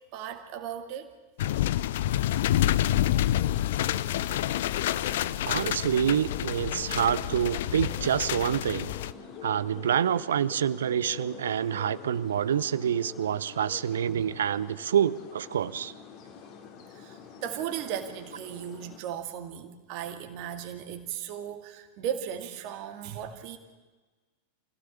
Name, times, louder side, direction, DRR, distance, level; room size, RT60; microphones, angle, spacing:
voice 1, 0.1-1.1 5.6-5.7 14.1-14.3 16.9-23.6, right 9 dB, 45° right, 6 dB, 2.2 m, -36 dB
sound 1, 1.4-9.1, left 13 dB, 55° left, 0.6 m, -28 dB
sound 2, 3.4-19.0, left 7 dB, 40° left, 2.7 m, -45 dB
voice 2, 5.4-8.9 9.4-15.9, right 9 dB, 65° right, 18 dB, 0.7 m, -27 dB
26.0 x 16.5 x 8.6 m, 1.3 s
figure-of-eight pair, 90°, 0 cm